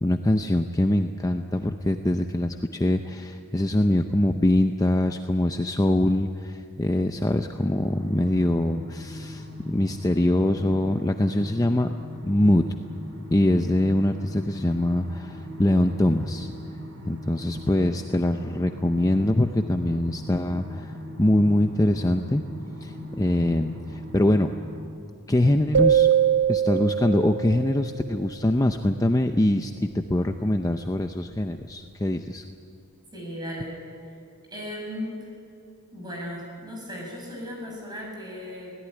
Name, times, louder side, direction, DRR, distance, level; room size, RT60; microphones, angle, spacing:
voice 1, 0.0-11.9 12.2-12.6 13.3-16.5 17.1-22.4 22.8-24.5 25.3-26.1 26.5-32.4, left 1 dB, 15° left, 6 dB, 0.6 m, -23 dB
sound 1, 7.2-24.8, left 1 dB, 75° right, 5.6 m, -40 dB
sound 2, 25.7-28.0, right 8 dB, 55° right, 0.7 m, -22 dB
voice 2, 33.1-33.8 34.0-34.1 34.5-35.3 35.9-38.7, equal, 20° right, -1 dB, 7.0 m, -36 dB
23.5 x 17.5 x 10.0 m, 2.5 s
head